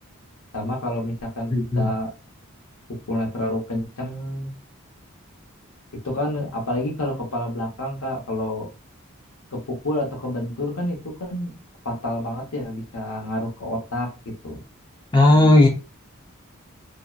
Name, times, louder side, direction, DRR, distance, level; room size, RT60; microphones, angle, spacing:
voice 1, 0.5-2.1 3.1-4.5 6.0-8.7 9.5-11.5 11.8-14.1 14.4-14.6, left 1 dB, 85° left, 0 dB, 0.8 m, -28 dB
voice 2, 1.5-1.9 15.1-15.7, left 2 dB, 20° left, 1 dB, 0.5 m, -15 dB
2.7 x 2.1 x 2.3 m, 0.32 s
head